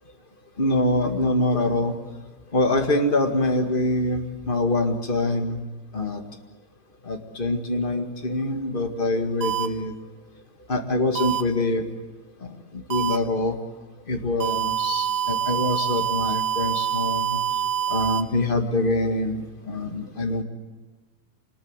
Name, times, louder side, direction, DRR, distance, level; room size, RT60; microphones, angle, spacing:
voice 1, 0.6-2.0 2.5-5.6 5.9-6.2 7.0-9.9 10.7-11.9 12.4-13.6 14.1-17.4 17.9-20.4, left 2 dB, 30° left, 4 dB, 1.0 m, -24 dB
sound 1, 9.4-9.7 11.2-11.4 12.9-13.2 14.4-18.2, right 9 dB, 65° right, 1.2 m, -25 dB
26.0 x 20.5 x 8.1 m, 1.2 s
omnidirectional pair, 4.3 m